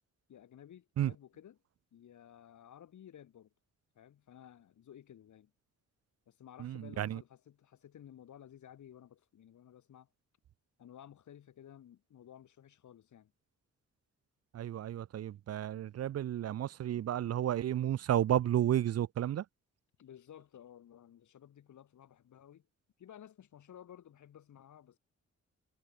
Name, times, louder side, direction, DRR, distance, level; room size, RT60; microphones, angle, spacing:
voice 1, 0.3-1.6 1.9-3.5 3.9-5.5 6.3-10.1 10.8-13.3 20.0-22.7 23.0-25.0, left 10 dB, 75° left, 6.9 m, -55 dB
voice 2, 6.6-7.2 14.5-19.4, right 11 dB, 60° right, 0.6 m, -32 dB
wide cardioid pair, 140°, 29 cm